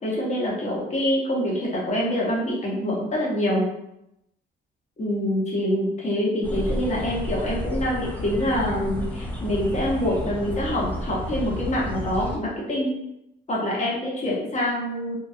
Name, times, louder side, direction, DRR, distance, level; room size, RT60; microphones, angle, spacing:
voice 1, 0.0-3.6 5.0-12.9 13.5-15.2, left 1 dB, 35° left, -4 dB, 1.1 m, -25 dB
sound 1, 6.4-12.4, equal, 10° left, 0.6 m, -31 dB
2.9 x 2.3 x 2.4 m, 0.84 s
cardioid pair, 90°, 20 cm